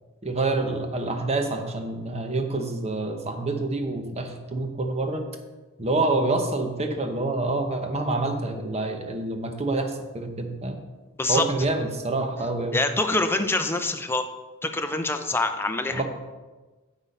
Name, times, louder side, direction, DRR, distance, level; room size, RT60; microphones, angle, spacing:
voice 1, 0.2-5.2 5.8-10.8 11.3-12.8 15.9-16.0, right 2 dB, 30° right, 5 dB, 0.9 m, -27 dB
voice 2, 12.7-14.2 14.6-16.0, left 2 dB, 10° left, 6 dB, 0.5 m, -25 dB
8.2 x 6.2 x 5.3 m, 1.2 s
head